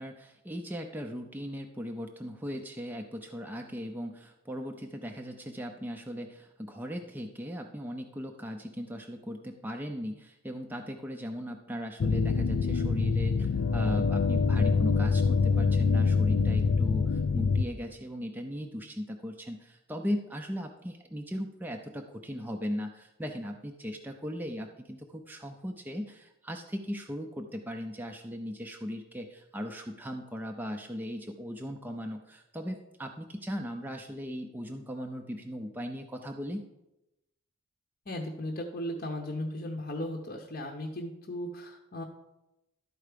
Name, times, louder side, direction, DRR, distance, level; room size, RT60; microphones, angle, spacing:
voice 1, 0.0-36.6, equal, 10° right, 3 dB, 0.4 m, -38 dB
sound 1, 12.0-17.6, left 4 dB, 55° left, 0.4 m, -25 dB
voice 2, 38.1-42.0, left 1 dB, 40° left, 2 dB, 0.8 m, -36 dB
12.0 x 4.5 x 5.0 m, 0.93 s
head